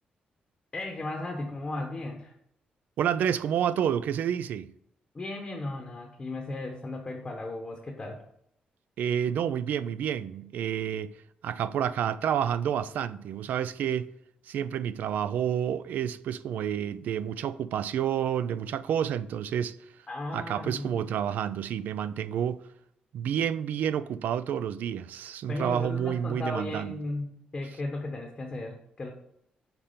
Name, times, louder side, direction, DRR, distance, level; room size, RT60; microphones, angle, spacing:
voice 1, 0.7-2.3 5.1-8.2 20.1-21.0 25.5-29.1, left 2 dB, 20° left, 0.9 m, -36 dB
voice 2, 3.0-4.7 9.0-11.1 11.4-14.1 14.5-19.8 20.3-22.6 23.1-27.0, right 9 dB, 75° right, 0.4 m, -29 dB
5.8 x 4.3 x 5.0 m
wide cardioid pair, 160°, 3 cm